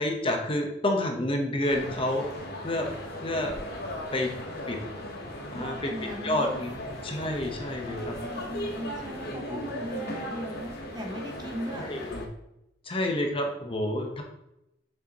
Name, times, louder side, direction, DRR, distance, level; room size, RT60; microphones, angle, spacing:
voice 1, 0.0-2.3 2.6-2.9 3.2-3.5 4.1-4.3 4.7-4.8 5.5-8.1 9.3-9.7 11.7-12.2 12.8-14.2, left 1 dB, 25° left, 2 dB, 1.0 m, -29 dB
sound 1, 1.6-12.3, equal, 50° left, 1.2 m, -37 dB
voice 2, 5.5-6.5 7.9-11.9, equal, 20° right, 2 dB, 0.9 m, -38 dB
7.0 x 6.7 x 3.0 m, 0.85 s
head